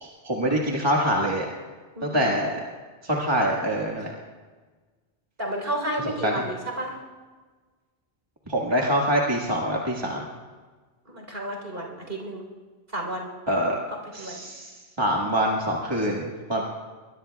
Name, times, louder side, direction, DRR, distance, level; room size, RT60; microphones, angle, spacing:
voice 1, 0.0-1.5 2.0-2.6 3.0-4.1 6.2-6.3 8.5-10.2 13.5-13.8 14.1-14.7 15.0-16.7, equal, 25° right, -2 dB, 1.6 m, -25 dB
voice 2, 1.9-2.3 5.4-7.0 8.7-8.9 11.1-12.4 12.9-13.3 14.2-14.4, right 1 dB, 60° right, 1 dB, 3.9 m, -32 dB
22.5 x 21.5 x 2.3 m, 1.4 s
omnidirectional pair, 1.1 m